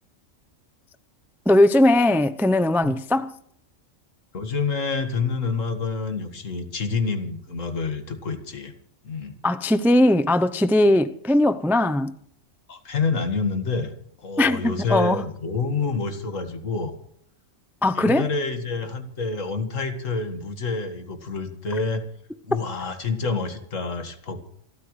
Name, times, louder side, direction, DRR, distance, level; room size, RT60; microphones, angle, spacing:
voice 1, 1.5-3.3 9.4-12.1 14.4-15.2 17.8-18.3, left 1 dB, 5° right, 0.3 m, -19 dB
voice 2, 4.3-8.7 9.0-9.4 12.7-13.9 14.2-17.0 17.9-22.0 22.4-24.5, left 4 dB, 75° left, 2.2 m, -28 dB
27.5 x 13.5 x 3.2 m
omnidirectional pair, 1.3 m